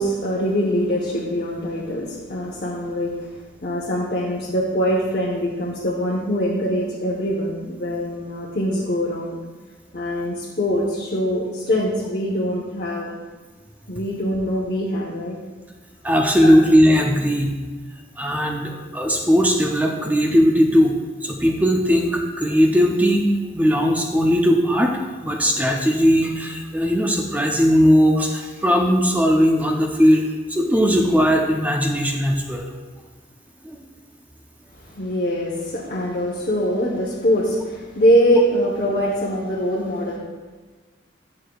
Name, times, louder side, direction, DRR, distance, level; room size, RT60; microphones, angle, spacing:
voice 1, 0.0-3.3 3.6-9.4 9.9-13.1 13.9-15.4 16.4-16.5 34.9-40.2, equal, 50° left, -5 dB, 0.9 m, -23 dB
voice 2, 16.0-17.5 18.2-21.0 21.2-23.3 23.5-32.7, equal, 10° right, 2 dB, 0.5 m, -18 dB
9.4 x 6.4 x 2.3 m, 1.4 s
head